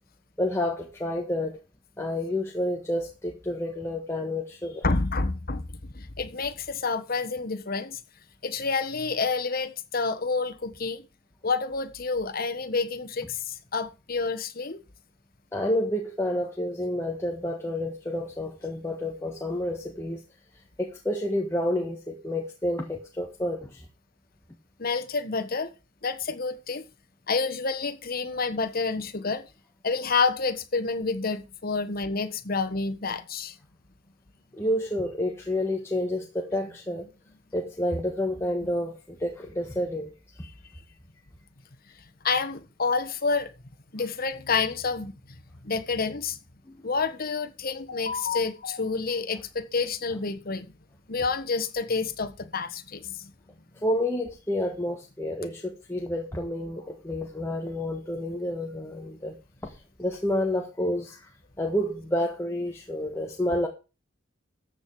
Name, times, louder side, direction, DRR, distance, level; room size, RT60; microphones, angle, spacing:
voice 1, 0.4-1.6 2.0-4.8 15.5-20.2 20.8-23.8 34.6-37.1 37.5-40.1 53.8-59.3 59.6-59.7 60.0-61.3 61.6-63.7, left 1 dB, 15° left, 1.5 m, -29 dB
voice 2, 4.8-8.0 8.4-11.0 11.4-14.8 24.8-25.7 26.0-26.8 27.3-29.4 29.8-33.5 38.6-38.7 42.2-43.5 43.9-45.1 45.6-46.4 46.8-50.7 51.1-53.3, left 4 dB, 50° left, 1.3 m, -28 dB
14.0 x 7.7 x 4.8 m
head